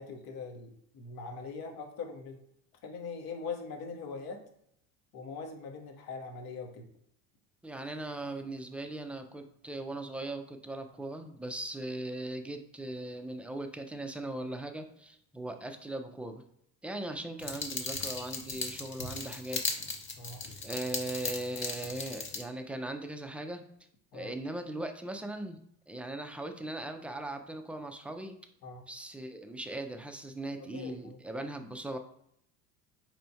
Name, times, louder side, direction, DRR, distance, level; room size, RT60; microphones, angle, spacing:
voice 1, 0.0-2.4 2.8-4.4 5.1-6.9 20.2-20.4 24.1-24.3 28.6-28.8 30.7-31.2, left 4 dB, 55° left, 4 dB, 1.0 m, -41 dB
voice 2, 7.6-16.4 16.8-19.7 20.6-23.7 24.1-25.6 25.9-28.4 28.9-32.0, right 1 dB, 5° right, 5 dB, 0.4 m, -39 dB
sound 1, 17.4-22.4, left 4 dB, 25° left, 0.9 m, -37 dB
4.3 x 3.2 x 2.7 m, 0.72 s
hypercardioid pair, 70°, 44 cm